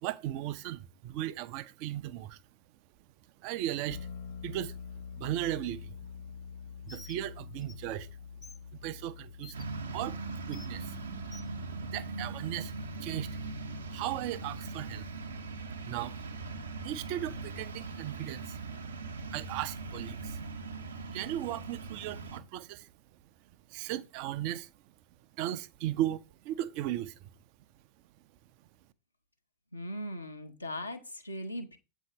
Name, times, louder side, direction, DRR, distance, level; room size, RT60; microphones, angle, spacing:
voice 1, 0.0-2.4 3.4-4.1 4.4-4.7 5.1-6.0 6.9-8.1 8.7-10.2 10.5-11.0 11.8-12.7 13.0-13.4 13.9-15.0 15.8-16.2 16.8-18.6 19.2-20.4 21.1-22.9 23.7-24.7 25.4-27.3, right 13 dB, 45° right, 0.4 m, -36 dB
sound 1, 3.9-17.3, left 6 dB, 55° left, 1.0 m, -48 dB
Bird, 6.9-7.2 7.6-7.7 8.4-8.6 9.4-9.6 10.5-10.7 11.3-11.5, left 3 dB, 15° left, 0.5 m, -50 dB
sound 2, 9.5-22.4, right 3 dB, 70° right, 0.7 m, -40 dB
voice 2, 29.7-31.8, left 1 dB, 80° left, 0.8 m, -39 dB
7.7 x 2.7 x 5.2 m
figure-of-eight pair, 90°, 0 cm